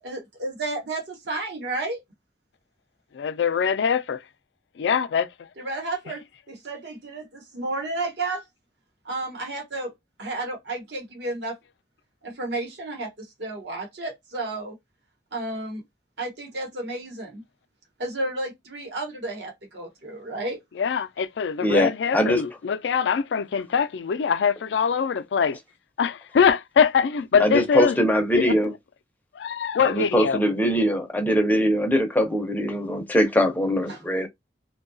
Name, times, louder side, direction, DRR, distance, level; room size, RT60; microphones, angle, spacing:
voice 1, 0.0-2.0 5.6-8.4 9.0-9.9 10.2-11.6 12.2-14.8 15.3-15.8 16.2-17.4 18.0-20.6 33.9-34.0, right 2 dB, 75° right, 1.0 m, -32 dB
voice 2, 3.1-4.2 4.8-5.5 20.8-25.6 26.0-28.0 28.5-28.6 29.3-30.4, left 6 dB, 75° left, 0.3 m, -23 dB
voice 3, 21.6-22.4 27.4-28.7 29.8-34.3, equal, 10° left, 0.5 m, -22 dB
2.7 x 2.2 x 2.6 m
head